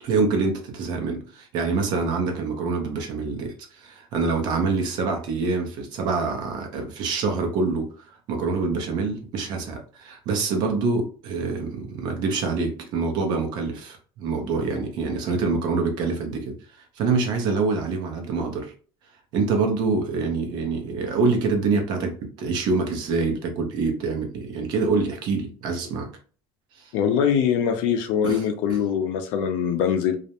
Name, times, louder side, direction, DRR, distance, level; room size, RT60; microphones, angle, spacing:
voice 1, 0.0-7.9 8.3-16.5 17.0-18.7 19.3-26.1 26.8-26.9 28.2-28.4, right 4 dB, 55° right, 0.7 m, -25 dB
voice 2, 26.9-30.2, left 8 dB, 75° left, 0.5 m, -23 dB
2.4 x 2.1 x 2.8 m
cardioid pair, 165°, 9 cm